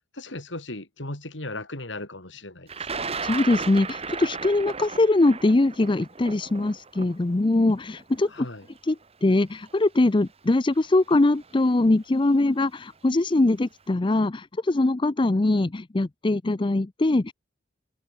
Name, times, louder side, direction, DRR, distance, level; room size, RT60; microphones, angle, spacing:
voice 1, 0.1-2.7 3.0-3.1 8.3-8.7, left 2 dB, 85° left, 5.5 m, -36 dB
Thunder, 2.7-8.7 9.6-9.7 10.9-11.1 11.4-11.9, right 5 dB, 35° right, 1.9 m, -35 dB
voice 2, 3.2-8.3 8.8-17.3, left 2 dB, 25° left, 0.5 m, -22 dB
head